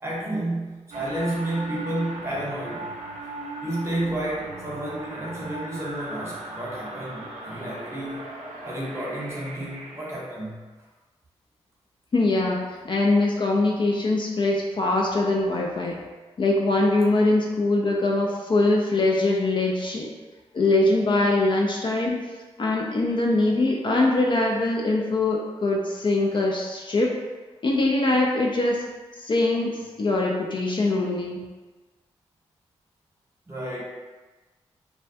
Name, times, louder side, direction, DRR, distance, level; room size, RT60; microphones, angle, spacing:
voice 1, 0.0-2.9 3.6-8.2 8.6-10.7 33.5-33.8, right 1 dB, 25° right, -5 dB, 0.9 m, -31 dB
sound 1, 0.9-10.2, right 2 dB, 75° right, 0.4 m, -38 dB
voice 2, 12.1-16.0 16.4-20.1 20.5-22.2 22.6-27.1 27.6-28.8 29.2-31.4, left 2 dB, 40° left, -1 dB, 0.4 m, -22 dB
2.2 x 2.1 x 2.7 m, 1.2 s
supercardioid pair, 45°, 12 cm